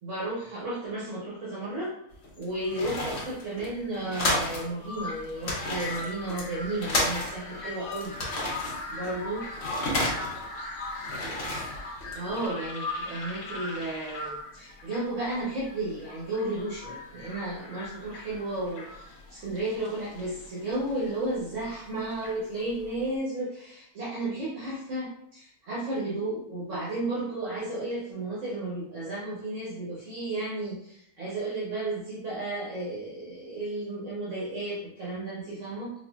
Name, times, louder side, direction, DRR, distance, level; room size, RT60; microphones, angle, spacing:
voice 1, 0.0-1.9 2.4-8.1 8.9-9.4 11.2-11.3 12.1-35.9, right 2 dB, 65° right, -8 dB, 1.2 m, -33 dB
sound 1, 2.1-4.7 5.0-5.1 5.3-7.6 7.9-10.5 10.9-12.5, left 1 dB, 55° left, 1.0 m, -31 dB
sound 2, 4.8-23.1, left 2 dB, 75° left, 1.2 m, -40 dB
3.9 x 2.5 x 2.3 m, 0.76 s
omnidirectional pair, 1.4 m